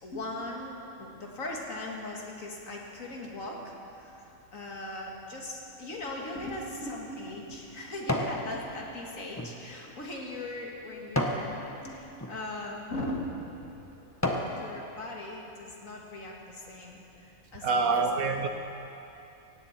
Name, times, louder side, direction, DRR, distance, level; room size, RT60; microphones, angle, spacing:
voice 1, 0.0-13.8 14.5-18.2, left 1 dB, 65° left, -1 dB, 2.5 m, -39 dB
sound 1, 6.8-8.4 8.9-11.5 12.1-12.3 13.0-13.2 13.7-14.6 15.0-15.1, left 1 dB, 10° left, 1.1 m, -33 dB
voice 2, 17.6-18.5, right 4 dB, 75° right, 6 dB, 1.4 m, -26 dB
17.5 x 17.0 x 4.4 m, 2.8 s
omnidirectional pair, 1.5 m